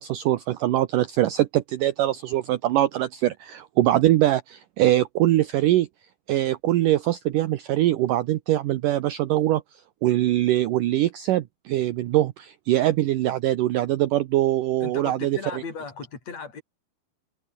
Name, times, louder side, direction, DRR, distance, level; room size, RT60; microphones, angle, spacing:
voice 1, 0.0-5.9 6.3-9.6 10.0-15.4, right 14 dB, 70° right, 2.2 m, -22 dB
voice 2, 14.8-16.6, left 5 dB, 40° left, 6.8 m, -36 dB
omnidirectional pair, 4.6 m